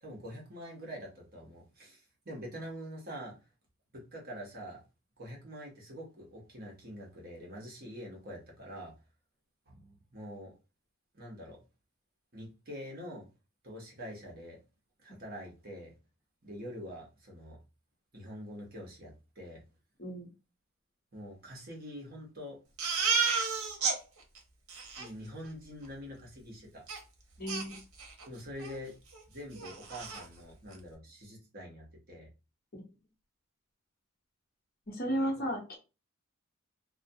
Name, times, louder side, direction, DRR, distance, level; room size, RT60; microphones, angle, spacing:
voice 1, 0.0-3.3 3.9-4.8 5.2-8.9 9.7-10.5 11.1-11.6 12.3-13.3 13.6-14.6 15.0-15.9 16.4-17.6 18.1-19.6 21.1-22.6 25.0-26.8 28.3-29.0 29.3-32.3 35.0-35.4, equal, 45° right, 0.9 m, -45 dB
voice 2, 20.0-20.3 27.4-27.8 34.9-35.8, equal, 45° left, 0.8 m, -33 dB
Crying sobbing, 22.8-24.0 24.4-24.5 24.7-25.1 26.9-27.0 27.5-28.3 28.6-28.8 29.1-29.2 29.6-30.2, right 5 dB, 85° right, 0.7 m, -31 dB
2.3 x 2.2 x 2.6 m
head